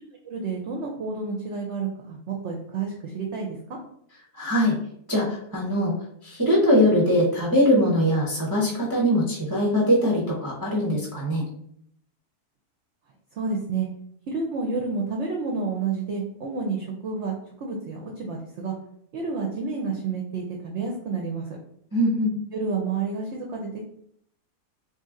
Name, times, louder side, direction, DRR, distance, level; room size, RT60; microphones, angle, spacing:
voice 1, 0.2-3.6 13.3-13.9 14.3-18.7 19.1-21.6 22.5-23.9, right 4 dB, 65° right, 1 dB, 0.7 m, -30 dB
voice 2, 4.3-4.8 5.1-5.9 6.2-11.5 21.9-22.4, equal, 25° right, -3 dB, 0.5 m, -22 dB
3.1 x 2.8 x 3.6 m, 0.68 s
omnidirectional pair, 1.7 m